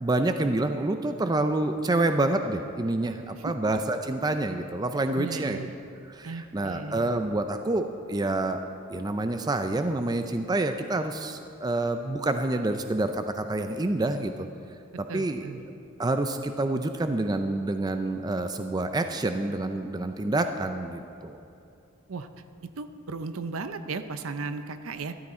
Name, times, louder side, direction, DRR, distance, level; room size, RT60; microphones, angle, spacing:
voice 1, 0.0-5.7 6.1-8.6 8.9-14.5 15.0-15.5 16.0-21.4, right 2 dB, 20° right, 7 dB, 0.4 m, -27 dB
voice 2, 5.2-5.7 6.2-7.2 15.1-15.6 22.1-22.3 22.8-25.1, right 4 dB, 70° right, 10 dB, 0.6 m, -36 dB
13.0 x 12.0 x 4.3 m, 2.6 s
head